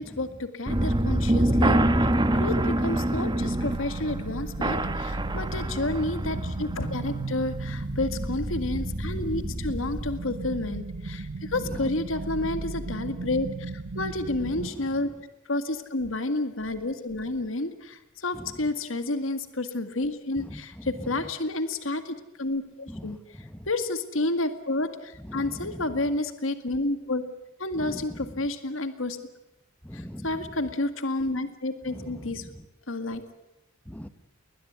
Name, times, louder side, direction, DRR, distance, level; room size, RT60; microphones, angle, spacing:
voice 1, 0.0-1.8 2.3-15.1 15.5-23.2 23.7-27.2 27.6-29.2 29.9-32.5 32.9-33.3, left 2 dB, 70° left, 10 dB, 2.0 m, -30 dB
sound 1, 0.7-10.2, right 1 dB, 20° right, 1.3 m, -27 dB
sound 2, 3.4-14.7, right 3 dB, 80° right, 1.0 m, -36 dB
voice 2, 9.1-9.4 11.6-11.9 12.4-12.6 14.6-14.9 18.3-18.5 20.4-21.2 22.9-23.7 25.2-25.9 27.7-28.5 29.8-30.5 31.9-32.7 33.8-34.1, equal, 5° left, 12 dB, 1.3 m, -41 dB
21.0 x 20.5 x 9.3 m, 0.93 s
head